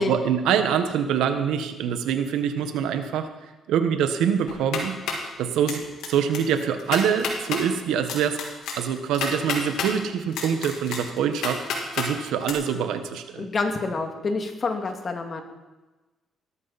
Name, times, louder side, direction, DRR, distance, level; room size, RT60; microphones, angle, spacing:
voice 1, 0.0-3.3 3.7-5.0 5.4-8.4 8.8-11.6 11.9-13.5, right 8 dB, 90° right, 8 dB, 1.4 m, -25 dB
sound 1, 4.5-5.3 5.7-6.1 6.3-6.4 6.8-7.6 8.1-9.9 10.3-12.1 12.4-12.5, left 5 dB, 85° left, 3.0 m, -29 dB
voice 2, 13.4-15.4, left 3 dB, 40° left, 4 dB, 2.3 m, -27 dB
17.5 x 13.5 x 4.2 m, 1.2 s
cardioid pair, 90°, 0 cm